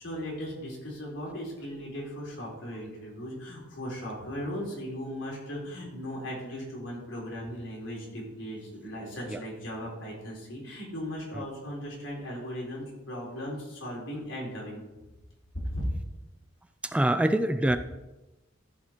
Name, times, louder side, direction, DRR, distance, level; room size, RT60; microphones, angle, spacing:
voice 1, 0.0-14.8 15.5-15.9, equal, 80° left, -3 dB, 3.7 m, -37 dB
voice 2, 16.9-17.8, right 1 dB, 5° right, 9 dB, 0.3 m, -24 dB
14.0 x 4.9 x 4.5 m, 1.0 s
head